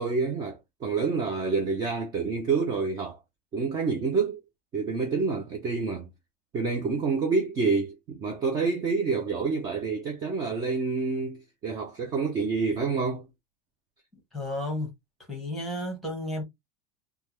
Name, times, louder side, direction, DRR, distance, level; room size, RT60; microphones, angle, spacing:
voice 1, 0.0-3.2 3.5-4.4 4.7-6.1 6.5-13.3, right 4 dB, 20° right, 0.5 m, -28 dB
voice 2, 14.3-14.9 15.3-16.4, left 1 dB, ahead, 1.3 m, -32 dB
3.4 x 2.2 x 3.0 m
supercardioid pair, 175°, 17 cm